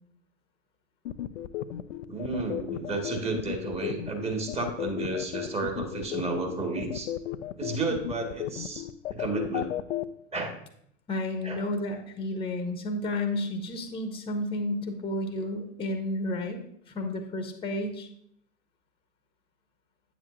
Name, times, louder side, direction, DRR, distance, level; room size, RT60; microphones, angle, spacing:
sound 1, 1.1-10.1, left 13 dB, 65° left, 0.5 m, -33 dB
voice 1, 2.1-7.1 7.6-8.8 9.1-9.7 10.3-10.5 11.4-11.6, right 3 dB, 15° right, 3 dB, 1.6 m, -32 dB
voice 2, 11.1-18.1, left 1 dB, 15° left, 5 dB, 1.1 m, -32 dB
9.3 x 7.5 x 2.6 m, 0.71 s
figure-of-eight pair, 90°, 38 cm